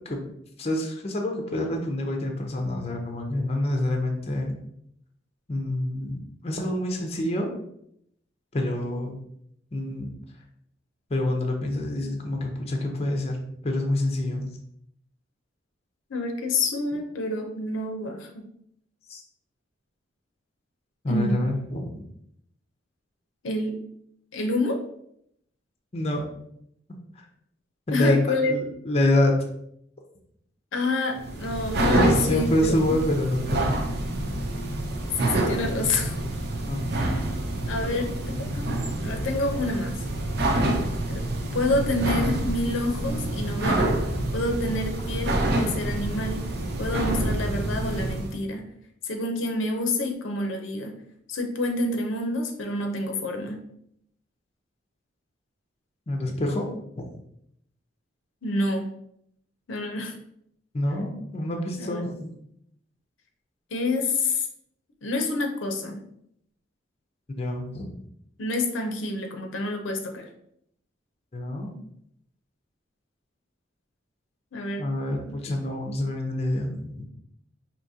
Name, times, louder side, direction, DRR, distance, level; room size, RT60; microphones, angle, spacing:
voice 1, 0.6-4.5 5.5-7.5 8.5-9.2 9.7-10.1 11.1-13.4 13.6-14.4 19.1-19.2 21.0-22.0 25.9-26.3 27.1-27.3 27.9-29.3 31.9-33.8 36.7-36.8 56.1-56.7 57.0-57.1 60.7-62.3 67.4-67.9 71.3-71.7 74.8-77.0, left 1 dB, 35° left, 2 dB, 0.6 m, -27 dB
voice 2, 16.1-18.4 21.1-21.5 23.4-23.8 24.3-24.8 27.9-28.5 30.7-32.7 35.2-36.1 37.6-39.9 41.1-41.2 41.5-43.9 44.3-46.4 46.8-48.7 49.0-51.0 51.3-53.6 58.4-58.9 59.7-60.1 61.8-62.0 63.7-64.5 65.0-66.0 68.4-70.3 74.5-74.9, left 2 dB, 85° left, 4 dB, 0.6 m, -28 dB
sound 1, 31.2-48.4, right 1 dB, 55° right, 0.6 m, -27 dB
4.8 x 2.8 x 2.7 m, 0.73 s
head